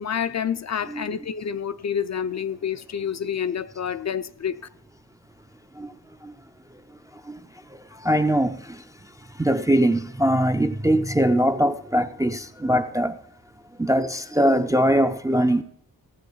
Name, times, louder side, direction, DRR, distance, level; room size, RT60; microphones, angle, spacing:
voice 1, 0.0-4.5, left 8 dB, 45° left, 0.4 m, -28 dB
voice 2, 8.0-8.6 9.4-13.2 13.8-15.6, equal, 10° right, 0.3 m, -21 dB
16.0 x 8.1 x 3.9 m
wide cardioid pair, 110°, 38 cm